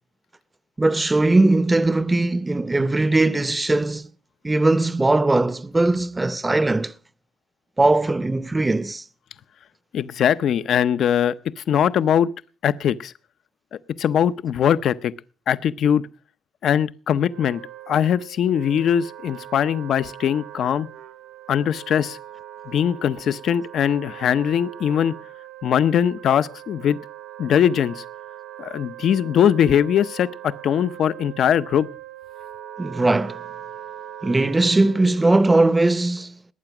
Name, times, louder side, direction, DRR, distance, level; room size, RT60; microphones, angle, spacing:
voice 1, 0.8-4.1 4.4-6.9 7.8-9.0 32.8-33.4 34.2-36.4, right 2 dB, 20° right, 0.7 m, -19 dB
voice 2, 9.9-12.3 12.6-13.1 14.0-15.1 15.5-16.1 16.6-17.6 17.9-20.9 21.5-22.2 22.7-25.1 25.6-27.0 27.4-28.0 28.6-31.9, left 9 dB, 70° left, 0.6 m, -21 dB
Wind instrument woodwind instrument, 17.2-35.3, right 11 dB, 75° right, 1.3 m, -41 dB
19.5 x 8.9 x 5.9 m
cardioid pair, 90°, 0 cm